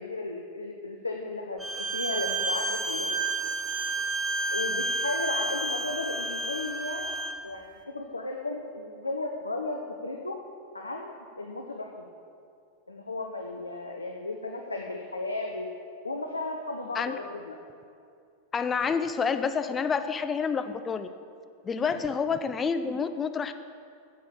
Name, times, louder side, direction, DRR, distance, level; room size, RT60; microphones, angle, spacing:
voice 1, 0.0-3.2 4.5-7.2 7.4-10.4 10.7-12.1 12.9-15.7 16.0-17.6 21.8-22.0, left 2 dB, 80° left, 2 dB, 0.8 m, -35 dB
Bowed string instrument, 1.6-7.4, right 2 dB, 10° right, 1.0 m, -30 dB
voice 2, 18.5-21.1 21.6-23.5, left 5 dB, 20° left, 9 dB, 0.6 m, -28 dB
10.0 x 7.6 x 7.1 m, 2.4 s
figure-of-eight pair, 90°, 0 cm